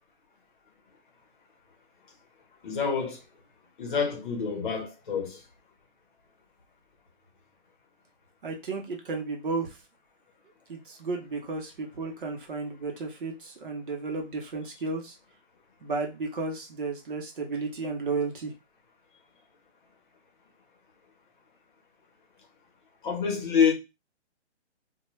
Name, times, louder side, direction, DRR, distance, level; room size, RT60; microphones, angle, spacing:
voice 1, 2.6-3.2 3.8-5.4 23.0-23.7, left 6 dB, 45° left, 0.9 m, -27 dB
voice 2, 8.4-9.7 10.7-15.1 15.8-18.5, right 3 dB, 45° right, 0.7 m, -33 dB
2.2 x 2.2 x 3.0 m
hypercardioid pair, 160°, 36 cm